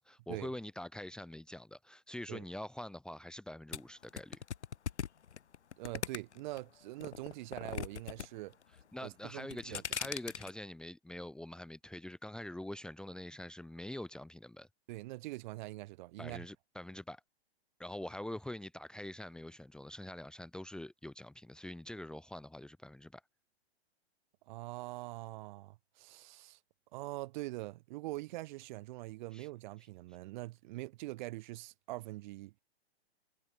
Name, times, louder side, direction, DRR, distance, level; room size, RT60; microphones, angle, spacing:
voice 1, 0.0-4.4 8.9-14.7 16.2-17.2 17.8-23.2 29.3-29.5, left 1 dB, ahead, 1.7 m, -45 dB
sound 1, 3.7-6.6 7.0-8.3 8.5-9.0 9.4-10.5, left 8 dB, 90° left, 1.3 m, -39 dB
voice 2, 5.8-8.6 9.0-9.8 14.9-16.4 24.5-26.6 26.9-32.5, right 19 dB, 45° right, 3.3 m, -43 dB
hypercardioid pair, 135°, 33 cm